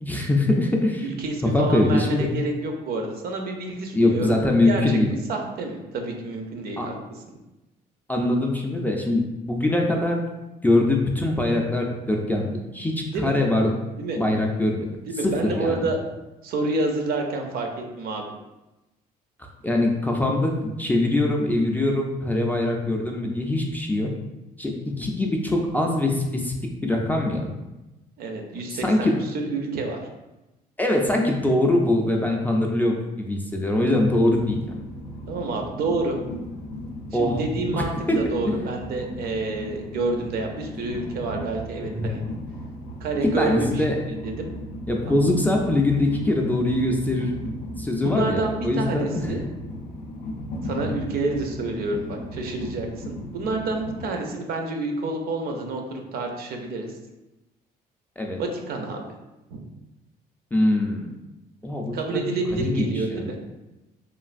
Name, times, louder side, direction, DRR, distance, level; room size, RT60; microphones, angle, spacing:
voice 1, 0.0-1.0 1.5-2.3 3.9-5.1 6.8-6.9 8.1-10.3 10.6-13.7 14.1-14.9 15.2-15.9 19.6-24.1 24.6-26.5 26.8-27.5 28.8-29.2 30.8-34.6 37.1-37.4 37.7-38.2 41.9-42.1 43.4-44.0 44.9-47.3 47.8-49.4 58.2-58.4 60.5-61.1 61.6-62.3 62.6-63.3, left 1 dB, 10° left, 0 dB, 0.3 m, -23 dB
voice 2, 1.0-4.4 4.6-7.0 13.1-13.3 14.0-14.2 15.1-16.0 16.4-17.7 18.0-18.2 28.2-30.0 35.3-36.2 37.2-42.2 43.0-44.5 45.1-45.2 48.0-49.4 50.6-56.9 58.4-59.0 59.5-59.6 61.9-63.4, right 3 dB, 65° right, 3 dB, 0.5 m, -28 dB
Train, 34.3-54.1, left 1 dB, 90° left, 0.4 m, -36 dB
3.1 x 2.4 x 2.4 m, 0.99 s
cardioid pair, 110°, 17 cm